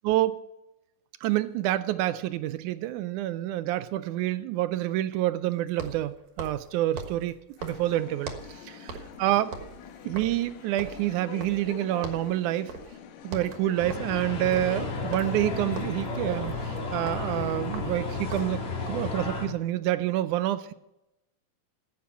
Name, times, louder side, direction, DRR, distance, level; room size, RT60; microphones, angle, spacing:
voice 1, 0.0-0.4 1.2-7.4 7.6-9.5 10.1-12.7 13.2-18.6 18.9-20.7, right 14 dB, 80° right, 13 dB, 1.8 m, -28 dB
sound 1, 2.4-2.5 5.7-8.6 8.9-9.2 9.5-11.8 12.0-12.3 12.7-13.0 13.2-18.6, right 4 dB, 60° right, 2.6 m, -41 dB
sound 2, 7.6-15.9, left 9 dB, 75° left, 2.4 m, -46 dB
sound 3, 13.8-19.5, left 3 dB, 55° left, 3.4 m, -33 dB
14.5 x 8.7 x 5.9 m, 0.91 s
omnidirectional pair, 3.9 m